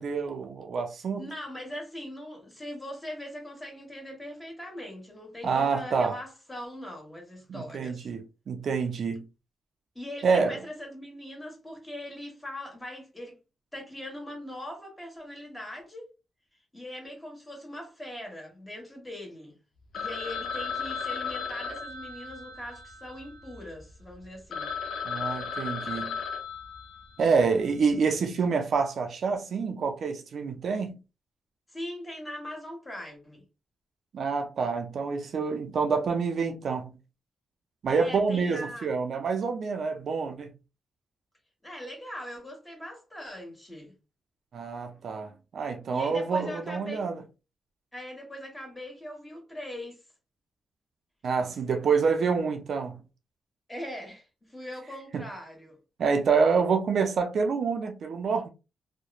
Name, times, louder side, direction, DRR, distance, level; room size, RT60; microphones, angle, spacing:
voice 1, 0.0-1.3 5.4-6.1 7.5-9.3 10.2-10.5 25.0-26.2 27.2-31.0 34.1-36.9 37.8-40.5 44.5-47.2 51.2-53.0 55.1-55.3 56.0-58.5, right 5 dB, 65° right, 0.4 m, -27 dB
voice 2, 1.2-8.1 9.9-13.4 13.7-16.1 16.7-19.6 19.9-24.7 31.7-33.4 37.9-38.9 41.6-43.9 45.9-47.1 47.9-50.0 53.7-55.8, left 1 dB, 15° left, 1.3 m, -41 dB
Telephone, 19.9-23.7 24.2-24.3 24.5-27.4, left 5 dB, 70° left, 0.5 m, -35 dB
2.9 x 2.0 x 2.3 m
cardioid pair, 95°, 0 cm